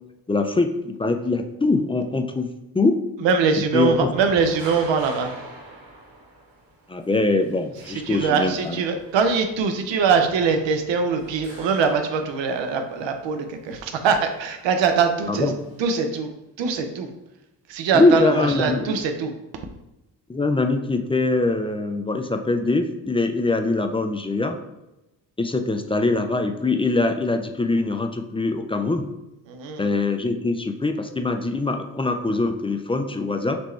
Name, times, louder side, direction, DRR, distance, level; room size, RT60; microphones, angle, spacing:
voice 1, 0.3-2.5 2.7-3.0 3.7-4.1 6.9-8.8 15.3-15.5 17.9-18.8 20.3-24.6 25.4-29.0 29.8-33.6, left 3 dB, 10° left, 6 dB, 0.4 m, -23 dB
voice 2, 3.2-5.4 7.9-15.5 15.8-16.3 16.6-17.1 17.7-19.7 29.5-29.9, right 5 dB, 65° right, 6 dB, 0.8 m, -22 dB
sound 1, 4.1-15.8, right 2 dB, 45° right, 1.5 m, -45 dB
4.3 x 3.0 x 3.3 m, 0.94 s
hypercardioid pair, 50°, 48 cm